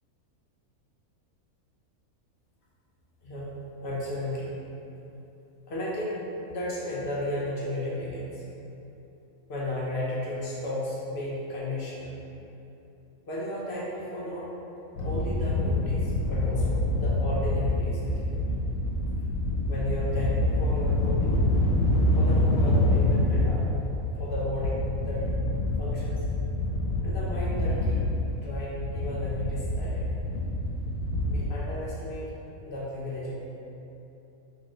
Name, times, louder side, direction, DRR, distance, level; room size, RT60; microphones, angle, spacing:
voice 1, 3.2-3.5 3.8-4.5 5.7-6.2 6.4-8.4 9.5-12.1 13.2-14.5 15.0-18.4 19.7-21.4 22.1-23.7 24.2-25.3 25.8-26.2 27.0-28.0 28.4-30.1 31.3-32.3 32.6-33.3, left 1 dB, 55° left, -6 dB, 0.9 m, -34 dB
sound 1, 15.0-31.4, left 1 dB, 80° left, 1.1 m, -26 dB
3.1 x 2.8 x 3.8 m, 2.9 s
omnidirectional pair, 1.6 m